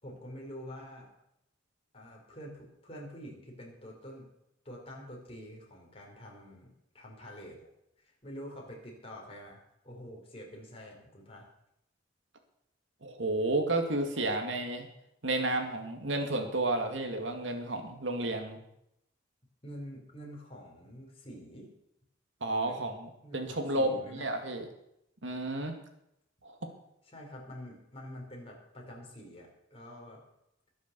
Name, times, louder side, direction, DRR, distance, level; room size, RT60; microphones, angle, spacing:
voice 1, 0.0-1.1 1.9-4.3 4.6-7.7 8.0-11.5 19.6-21.7 22.6-22.8 23.2-24.3 27.0-30.2, equal, 30° left, -1 dB, 4.6 m, -47 dB
voice 2, 13.0-14.9 15.2-18.6 22.4-24.7 25.2-25.7 26.4-26.7, right 2 dB, 75° right, 4 dB, 2.3 m, -32 dB
21.5 x 7.3 x 7.0 m, 0.80 s
head